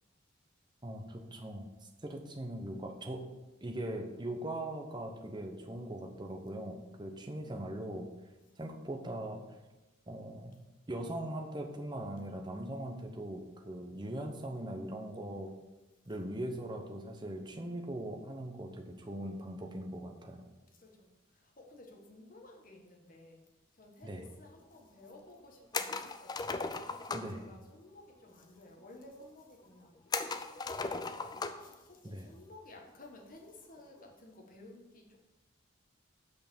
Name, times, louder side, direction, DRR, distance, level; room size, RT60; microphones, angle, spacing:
voice 1, 0.8-1.7 2.0-3.3 3.6-8.1 8.6-9.4 10.1-10.6 10.9-15.5 16.1-20.5 24.0-24.2 27.1-27.4 32.0-32.3, right 1 dB, 20° right, 3 dB, 0.9 m, -40 dB
voice 2, 20.7-23.4 23.7-26.6 26.9-35.2, left 2 dB, 40° left, 1 dB, 1.4 m, -55 dB
sound 1, 25.7-27.4 30.1-31.7 32.1-32.2 33.8-34.1, left 4 dB, 20° left, 0.4 m, -37 dB
6.5 x 5.9 x 6.9 m, 1.1 s
head